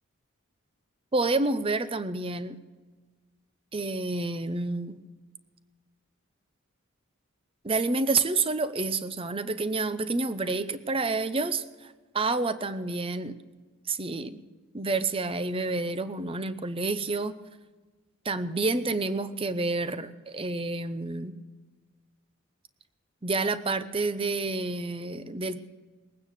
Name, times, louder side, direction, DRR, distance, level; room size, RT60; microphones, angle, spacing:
voice 1, 1.1-2.6 3.7-5.0 7.6-13.4 13.9-14.4 14.7-17.4 18.2-21.4 23.2-25.6, right 3 dB, 25° right, 12 dB, 0.7 m, -29 dB
21.0 x 9.4 x 6.6 m, 1.3 s
head